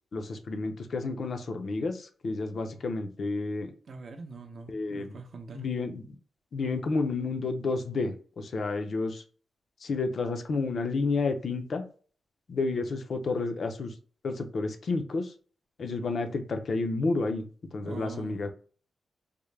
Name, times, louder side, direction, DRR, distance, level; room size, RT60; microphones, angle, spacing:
voice 1, 0.1-3.7 4.7-5.2 5.5-6.2 6.5-9.2 9.8-11.8 12.5-13.9 14.2-15.3 15.8-17.4 17.7-18.5, left 3 dB, 55° left, 0.5 m, -30 dB
voice 2, 3.9-5.7 17.8-18.4, right 4 dB, 55° right, 0.5 m, -43 dB
3.5 x 2.1 x 3.2 m
wide cardioid pair, 130°, 0 cm